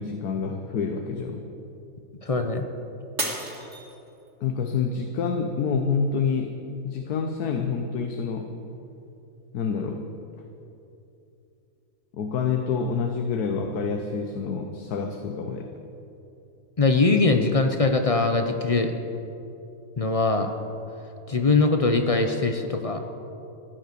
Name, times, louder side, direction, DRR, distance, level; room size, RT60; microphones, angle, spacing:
voice 1, 0.0-1.4 4.4-6.6 6.8-8.6 9.5-10.0 12.1-15.7, left 5 dB, 70° left, 5 dB, 1.3 m, -27 dB
voice 2, 2.2-2.6 16.8-18.9 20.0-20.5 21.3-23.0, left 3 dB, 50° left, 5 dB, 0.4 m, -22 dB
Shatter, 3.2-4.5 5.0-5.4 6.0-6.1, right 2 dB, 50° right, 2.3 m, -32 dB
15.0 x 10.5 x 6.7 m, 2.8 s
omnidirectional pair, 1.8 m